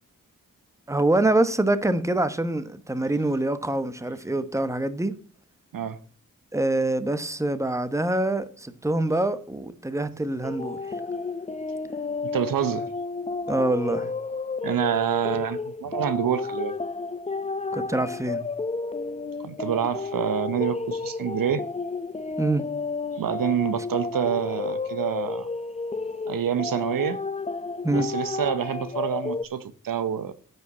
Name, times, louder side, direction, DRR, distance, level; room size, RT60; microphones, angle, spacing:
voice 1, 0.9-5.2 6.5-11.0 13.5-14.1 17.7-18.4 22.4-22.6 27.8-28.1, right 2 dB, 10° right, 1.1 m, -25 dB
sound 1, 10.4-29.5, left 4 dB, 20° left, 0.6 m, -32 dB
voice 2, 12.2-12.9 14.6-16.7 19.4-21.6 23.2-25.5 26.3-27.2 27.9-30.3, right 8 dB, 75° right, 0.8 m, -27 dB
9.2 x 5.3 x 7.1 m
cardioid pair, 45°, 34 cm